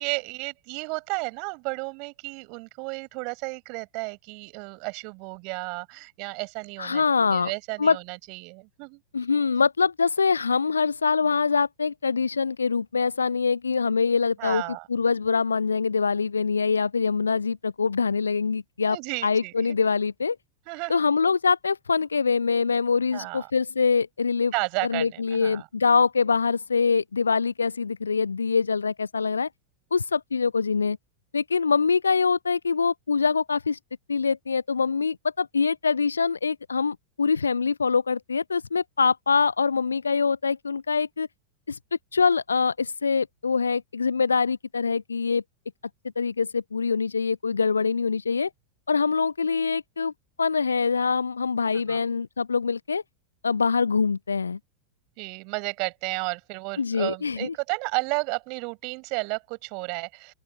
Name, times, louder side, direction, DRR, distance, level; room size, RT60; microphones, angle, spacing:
voice 1, 0.0-9.0 14.4-14.9 18.9-19.8 20.7-21.0 23.1-23.5 24.5-25.6 51.9-52.0 55.2-60.3, right 34 dB, 45° right, 6.7 m, -33 dB
voice 2, 6.8-7.5 7.8-8.0 9.1-14.6 14.9-19.0 19.2-20.4 20.9-24.5 24.8-29.5 29.9-31.0 31.3-33.8 34.1-41.3 41.7-41.8 42.1-45.4 46.2-48.5 48.9-50.1 50.4-53.0 53.4-54.6 56.8-57.5, left 5 dB, 75° left, 0.5 m, -24 dB
open air
figure-of-eight pair, 90°, 0 cm